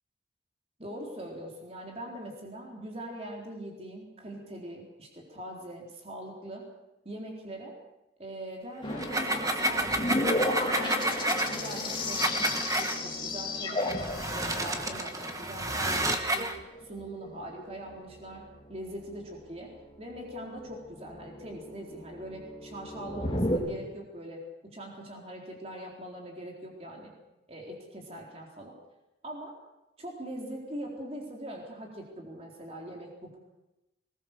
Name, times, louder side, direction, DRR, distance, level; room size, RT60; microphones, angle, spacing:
voice 1, 0.8-6.7 7.0-7.8 8.2-15.1 15.4-16.5 16.8-19.7 20.0-27.1 27.5-28.7 29.2-29.5 30.0-33.4, right 1 dB, 35° right, 0 dB, 4.0 m, -42 dB
sound 1, 8.8-23.6, left 2 dB, 25° left, 4.5 m, -34 dB
sound 2, 8.9-13.0 13.8-16.6, right 1 dB, 20° right, 1.6 m, -30 dB
22.0 x 20.0 x 6.8 m, 0.96 s
head